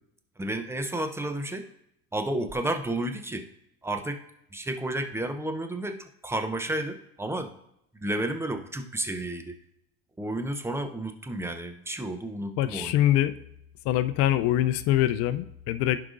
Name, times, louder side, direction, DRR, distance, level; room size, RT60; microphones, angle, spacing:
voice 1, 0.4-1.6 2.1-3.4 3.8-4.2 4.5-7.5 7.9-9.6 10.2-13.0, right 1 dB, 10° right, 7 dB, 0.7 m, -31 dB
voice 2, 12.6-13.3 13.8-16.0, left 13 dB, 60° left, 12 dB, 0.5 m, -24 dB
11.0 x 4.9 x 2.6 m, 0.78 s
hypercardioid pair, 90°, 29 cm